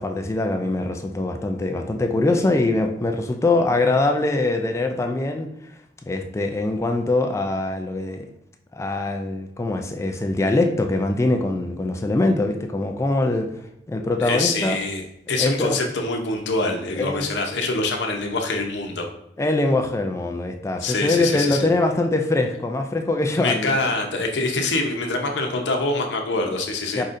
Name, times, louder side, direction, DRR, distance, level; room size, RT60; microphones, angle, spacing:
voice 1, 0.0-5.7 6.1-8.3 8.7-13.5 13.9-14.8 15.4-15.8 17.0-17.3 19.4-23.8 27.0-27.1, left 2 dB, 15° left, 5 dB, 0.3 m, -23 dB
voice 2, 14.2-19.1 20.8-21.7 23.3-27.0, left 2 dB, 90° left, 3 dB, 0.8 m, -25 dB
4.8 x 4.0 x 2.5 m, 0.79 s
head